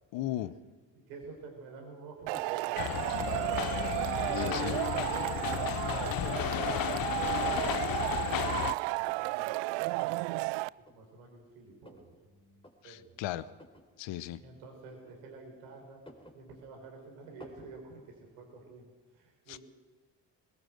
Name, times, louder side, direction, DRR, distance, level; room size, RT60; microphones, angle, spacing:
voice 1, 0.1-0.6 4.3-4.7 12.8-13.5 14.0-14.4 19.5-19.6, left 14 dB, 60° left, 16 dB, 1.0 m, -36 dB
voice 2, 0.9-3.6 4.2-5.4 5.8-13.2 14.4-16.0 16.3-18.8 19.1-19.6, right 4 dB, 80° right, 1 dB, 5.1 m, -49 dB
sound 1, 2.3-2.6 3.2-3.8 4.1-4.7 5.5-5.9 6.2-6.3 6.5-7.1 7.4-7.5 8.1-8.5 9.1-9.3 10.2-10.3 10.8-12.1 12.5-12.7 13.5-13.9 14.9-15.5 15.9-16.9 17.4-17.7, left 1 dB, 10° left, 3.7 m, -53 dB
Male speech man speaking / Shout / Clapping, 2.3-10.7, right 22 dB, 60° right, 0.5 m, -33 dB
sound 2, 2.8-8.7, left 13 dB, 45° left, 0.7 m, -33 dB
20.5 x 17.0 x 7.9 m, 1.3 s
figure-of-eight pair, 40°, 49 cm